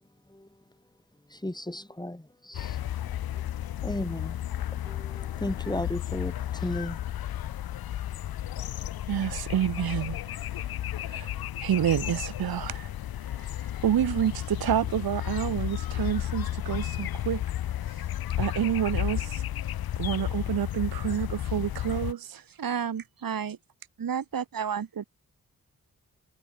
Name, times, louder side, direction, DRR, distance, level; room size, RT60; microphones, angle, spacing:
voice 1, 1.3-2.8 3.0-3.4 3.8-4.5 4.8-7.0, left 1 dB, 10° left, 2.6 m, -35 dB
sound 1, 2.5-22.1, left 12 dB, 90° left, 1.4 m, -33 dB
voice 2, 9.1-10.2 11.1-11.3 11.6-12.9 13.4-13.5 13.8-17.4 18.4-19.4 20.0-22.4, right 10 dB, 90° right, 4.1 m, -28 dB
voice 3, 22.3-23.6 24.0-25.0, right 7 dB, 70° right, 3.9 m, -32 dB
cardioid pair, 45°, 35 cm